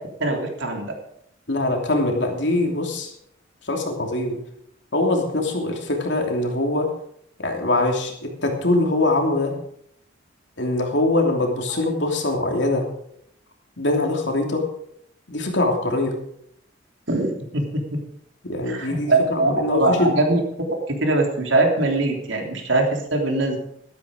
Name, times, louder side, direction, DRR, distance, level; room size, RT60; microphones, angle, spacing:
voice 1, 0.2-0.9 11.7-11.8 17.1-18.0 18.7-20.4 20.9-23.6, right 2 dB, 80° right, 2 dB, 3.2 m, -22 dB
voice 2, 1.5-3.1 3.6-4.4 4.9-6.9 7.4-9.6 10.6-12.9 13.8-14.7 15.3-16.2 18.4-20.1, left 2 dB, 70° left, 2 dB, 2.9 m, -23 dB
13.0 x 12.5 x 5.0 m, 0.71 s
head